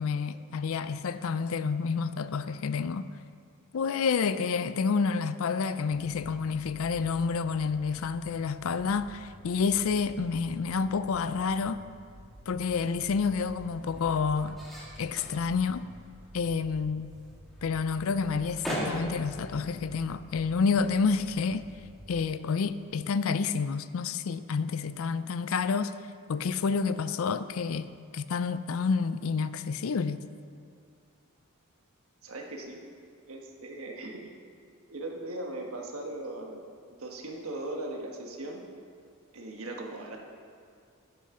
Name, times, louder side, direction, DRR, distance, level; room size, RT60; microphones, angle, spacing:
voice 1, 0.0-3.1 3.7-11.8 12.5-14.6 15.0-15.9 16.3-17.1 17.6-21.6 22.1-25.9 26.3-27.9 28.1-30.2, left 5 dB, 70° left, 0.4 m, -29 dB
sound 1, 5.9-22.3, equal, 45° right, 2.0 m, -50 dB
sound 2, 12.2-22.1, equal, ahead, 2.4 m, -43 dB
voice 2, 32.2-32.8 33.3-34.3 34.9-36.6 37.0-38.6 39.3-40.2, right 2 dB, 70° right, 1.4 m, -38 dB
11.5 x 9.5 x 3.8 m
head